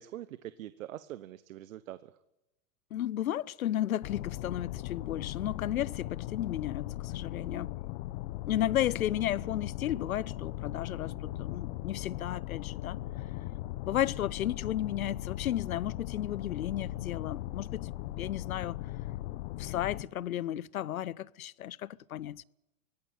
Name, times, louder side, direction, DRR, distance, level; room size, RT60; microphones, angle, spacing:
voice 1, 0.0-2.1, right 13 dB, 70° right, 1.1 m, -44 dB
voice 2, 2.9-7.7 8.5-13.0 13.8-17.9 18.2-18.8 19.6-22.4, left 12 dB, 80° left, 0.8 m, -33 dB
sound 1, 4.0-20.0, left 15 dB, 50° left, 1.2 m, -38 dB
24.5 x 18.0 x 9.3 m
hypercardioid pair, 105°, 41 cm